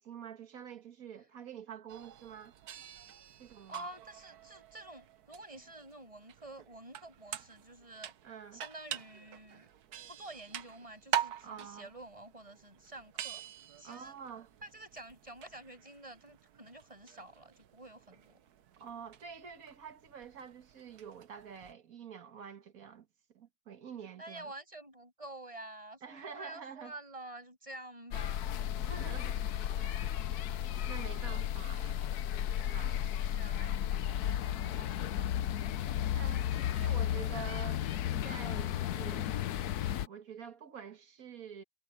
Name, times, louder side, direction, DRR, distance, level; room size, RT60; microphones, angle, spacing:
voice 1, 0.0-2.6 3.4-3.9 8.2-8.6 11.4-11.9 13.8-14.5 18.8-23.1 23.3-24.5 26.0-26.9 28.6-29.4 29.8-30.5 30.8-32.0 32.7-33.0 36.1-39.4 40.1-41.6, right 7 dB, 65° right, 2.0 m, -47 dB
sound 1, 1.9-21.7, right 10 dB, 85° right, 1.5 m, -45 dB
voice 2, 3.7-8.1 8.5-9.7 10.1-13.4 13.8-14.2 14.6-18.4 24.2-28.6 33.2-35.3, right 1 dB, 20° right, 7.3 m, -49 dB
sound 2, 28.1-40.1, left 10 dB, 80° left, 1.3 m, -34 dB
omnidirectional pair, 1.6 m